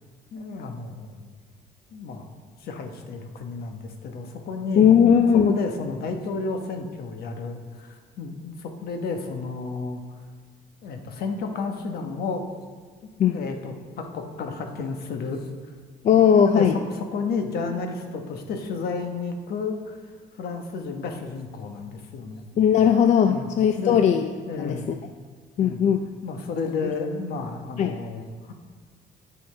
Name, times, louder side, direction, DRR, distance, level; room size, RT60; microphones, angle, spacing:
voice 1, 0.3-1.3 1.9-2.3 2.6-5.1 5.4-10.0 10.8-12.5 13.3-15.5 16.1-16.7 16.9-20.0 20.3-22.5 23.2-23.5 23.8-24.2 24.5-24.9 25.6-25.9 26.2-28.5, left 4 dB, 65° left, 4 dB, 1.1 m, -32 dB
voice 2, 4.8-5.6 13.2-13.4 16.0-16.7 22.6-24.3 24.6-24.8 25.6-26.0 27.8-28.0, left 8 dB, 45° left, 6 dB, 0.4 m, -18 dB
13.5 x 5.5 x 3.3 m, 1.5 s
cardioid pair, 110°, 17 cm